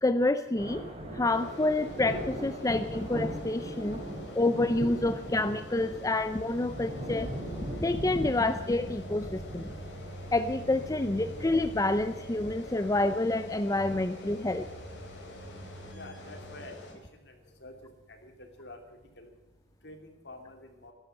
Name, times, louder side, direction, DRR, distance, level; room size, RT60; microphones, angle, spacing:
voice 1, 0.0-0.8 1.1-4.0 4.3-7.3 7.8-9.7 10.3-14.7, left 2 dB, 20° left, 10 dB, 0.5 m, -28 dB
sound 1, 0.6-14.7 15.2-15.5 16.4-16.7 17.4-17.5 19.0-19.1, equal, 35° right, 4.5 m, -40 dB
sound 2, 1.2-16.9, left 1 dB, 85° left, 3.8 m, -48 dB
sound 3, 4.6-16.7, right 1 dB, 85° right, 7.3 m, -47 dB
voice 2, 15.9-16.7 17.6-17.7 18.2-18.8 19.2-19.3 19.8-20.9, left 2 dB, 65° left, 4 dB, 2.9 m, -47 dB
12.0 x 12.0 x 8.8 m, 1.1 s
head